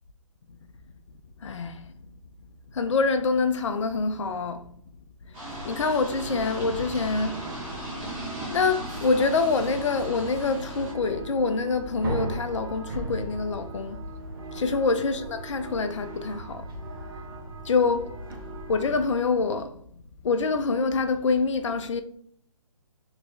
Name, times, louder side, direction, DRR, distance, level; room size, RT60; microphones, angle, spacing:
voice 1, 1.4-1.8 2.7-4.6 5.6-7.4 8.5-14.0 14.5-16.7 17.6-18.1 18.7-19.8 20.2-22.0, left 4 dB, 55° left, 0.4 m, -26 dB
sound 1, 5.3-10.9, right 1 dB, 10° right, 0.4 m, -37 dB
sound 2, 5.5-19.2, right 1 dB, 40° right, 0.8 m, -38 dB
2.9 x 2.6 x 3.2 m
figure-of-eight pair, 140°, 18 cm